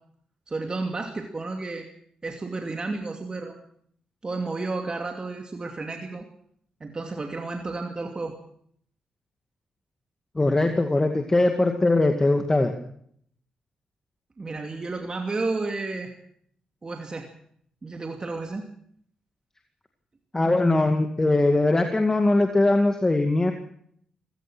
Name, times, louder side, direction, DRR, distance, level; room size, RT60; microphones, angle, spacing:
voice 1, 0.5-1.9 2.2-3.6 4.2-6.2 6.8-8.3 14.4-16.1 16.8-17.3 17.8-18.7, right 3 dB, 35° right, 3 dB, 2.6 m, -32 dB
voice 2, 10.4-12.7 20.3-23.5, left 2 dB, 25° left, 5 dB, 2.2 m, -21 dB
25.5 x 17.5 x 6.3 m, 0.66 s
cardioid pair, 65°, 2 cm